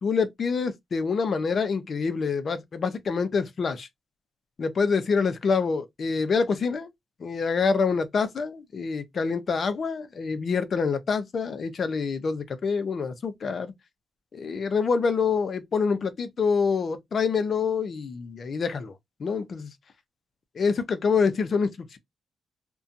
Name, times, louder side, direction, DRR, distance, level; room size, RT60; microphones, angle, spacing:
voice 1, 0.0-3.9 4.6-6.9 7.2-13.7 14.3-18.9 19.2-19.7 20.6-22.0, left 5 dB, 45° left, 0.5 m, -26 dB
2.7 x 2.2 x 2.5 m
cardioid pair, 120°, 0 cm